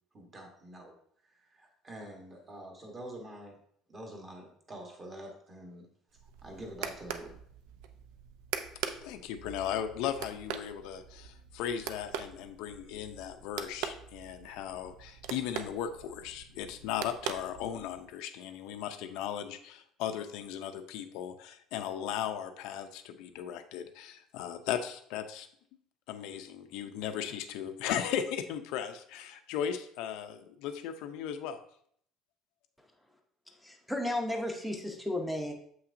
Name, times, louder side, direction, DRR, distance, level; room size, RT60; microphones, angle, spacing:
voice 1, 0.1-1.0 1.2-3.6 3.9-5.9 6.4-7.4, right 1 dB, 20° right, 1 dB, 1.1 m, -46 dB
sound 1, 6.1-18.1, right 8 dB, 90° right, 0.5 m, -42 dB
voice 2, 9.0-25.5 26.1-31.6, left 9 dB, 65° left, 8 dB, 0.5 m, -37 dB
voice 3, 33.6-35.5, left 1 dB, ahead, 2 dB, 0.6 m, -33 dB
7.5 x 5.7 x 2.6 m, 0.65 s
cardioid pair, 180°, 0 cm